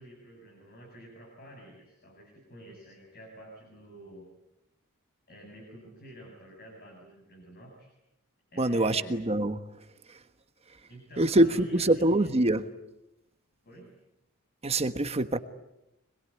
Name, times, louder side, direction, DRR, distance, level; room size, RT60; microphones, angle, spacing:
voice 1, 0.0-4.3 5.3-7.9 8.5-9.2 10.9-12.5 13.6-13.9, equal, 45° left, 2 dB, 6.8 m, -50 dB
voice 2, 8.6-9.6 10.1-10.2 11.2-12.7 14.6-15.4, right 1 dB, 30° right, 9 dB, 1.4 m, -24 dB
26.0 x 22.0 x 9.7 m, 0.89 s
head